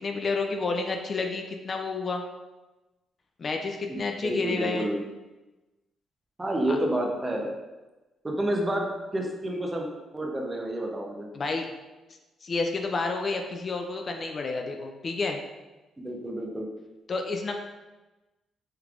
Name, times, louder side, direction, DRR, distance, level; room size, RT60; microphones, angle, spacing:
voice 1, 0.0-2.2 3.4-4.9 6.7-6.8 11.3-11.7 12.4-15.4 17.1-17.5, left 3 dB, 40° left, 4 dB, 0.3 m, -30 dB
voice 2, 3.9-5.0 6.4-7.5 8.2-9.9 10.1-11.3 16.0-16.7, right 1 dB, 20° right, 0 dB, 0.6 m, -29 dB
3.3 x 3.2 x 2.4 m, 1.1 s
cardioid pair, 90°, 0 cm